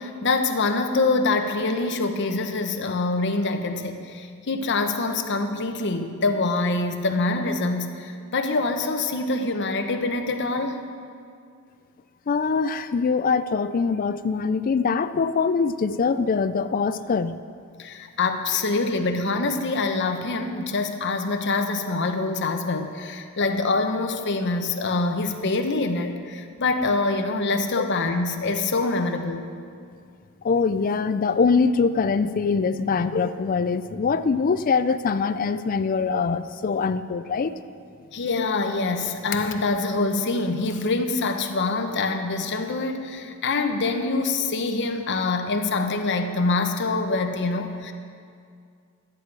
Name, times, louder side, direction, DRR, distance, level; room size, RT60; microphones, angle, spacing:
voice 1, 0.0-10.8 17.8-29.5 38.1-47.9, left 3 dB, 55° left, 5 dB, 0.8 m, -25 dB
voice 2, 12.3-17.4 27.8-27.9 30.4-37.6, left 5 dB, 40° left, 12 dB, 0.4 m, -23 dB
12.0 x 9.9 x 4.7 m, 2.3 s
head